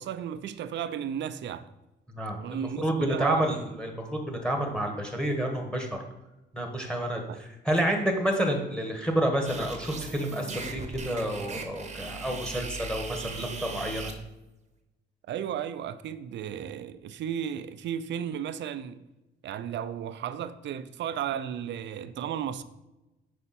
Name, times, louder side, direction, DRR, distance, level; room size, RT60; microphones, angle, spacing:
voice 1, 0.0-1.6 2.4-3.5 7.3-7.4 15.3-19.0 19.4-22.6, right 9 dB, 65° right, 0.4 m, -34 dB
voice 2, 2.1-6.0 6.5-14.1, right 1 dB, 5° left, 1.2 m, -29 dB
sound 1, 9.4-14.1, right 4 dB, 35° right, 0.8 m, -38 dB
5.5 x 4.1 x 4.2 m
cardioid pair, 80°, 20 cm